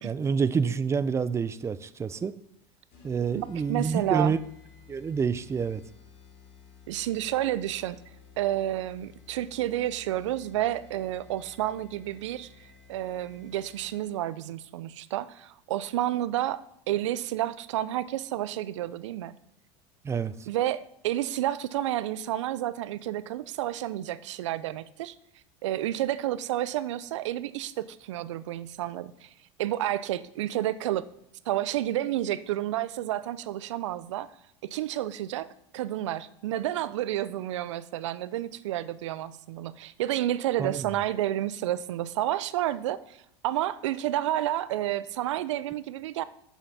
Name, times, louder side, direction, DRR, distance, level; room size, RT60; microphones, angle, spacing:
voice 1, 0.0-2.3 3.0-4.4 4.9-5.8 20.0-20.3 40.6-40.9, right 6 dB, 20° right, 15 dB, 0.4 m, -28 dB
sound 1, 2.9-14.3, left 6 dB, 55° left, 2.7 m, -54 dB
voice 2, 3.3-4.3 6.9-8.0 8.4-19.4 20.5-25.1 25.6-29.3 29.6-31.1 31.5-34.3 34.6-35.5 35.7-46.2, right 13 dB, 85° right, 17 dB, 0.5 m, -30 dB
7.2 x 5.7 x 5.4 m, 0.78 s
supercardioid pair, 110°, 15 cm